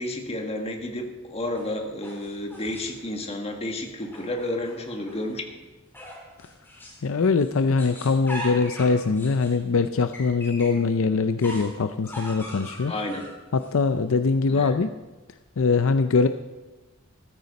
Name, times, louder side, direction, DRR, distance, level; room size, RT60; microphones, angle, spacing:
voice 1, 0.0-5.7 12.9-13.3 14.5-14.8, left 1 dB, 30° left, 3 dB, 1.7 m, -31 dB
sound 1, 1.5-3.1 4.0-5.3 5.9-7.1 7.4-10.8 11.4-13.7, equal, 10° left, 3.6 m, -41 dB
voice 2, 7.0-12.9 13.5-14.9 15.6-16.3, left 4 dB, 65° left, 10 dB, 0.5 m, -22 dB
14.5 x 13.5 x 4.2 m, 1.2 s
head